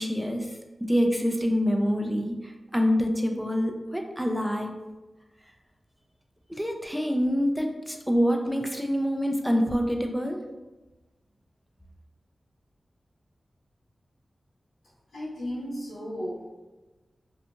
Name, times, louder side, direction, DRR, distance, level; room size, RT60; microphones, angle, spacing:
voice 1, 0.0-4.8 6.5-10.4, equal, ahead, 3 dB, 0.4 m, -26 dB
voice 2, 15.1-16.5, equal, 85° left, -12 dB, 1.2 m, -34 dB
2.8 x 2.4 x 2.4 m, 1.1 s
cardioid pair, 50°, 0 cm